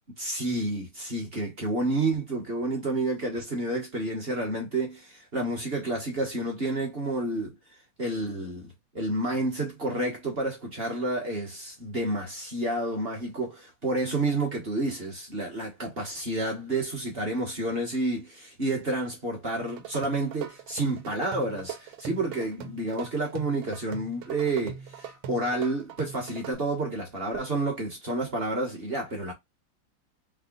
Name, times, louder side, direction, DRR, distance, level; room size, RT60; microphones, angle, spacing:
voice 1, 0.2-7.5 8.0-29.3, right 2 dB, 40° right, 1.0 m, -30 dB
sound 1, 19.6-26.5, right 8 dB, 80° right, 1.5 m, -41 dB
3.5 x 2.2 x 3.8 m
omnidirectional pair, 2.2 m